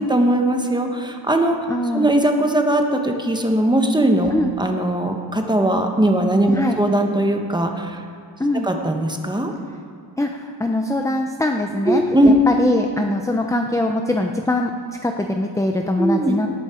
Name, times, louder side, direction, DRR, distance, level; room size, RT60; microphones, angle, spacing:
voice 1, 0.0-1.6 1.9-4.3 4.6-8.0 8.6-9.5 11.9-12.3 16.0-16.3, right 1 dB, 10° right, 3 dB, 0.9 m, -19 dB
voice 2, 1.7-2.2 4.3-4.5 6.5-6.8 8.4-8.7 10.2-14.7 15.0-16.5, left 1 dB, 5° left, 4 dB, 0.4 m, -22 dB
18.0 x 7.2 x 4.8 m, 2.6 s
wide cardioid pair, 155°, 45 cm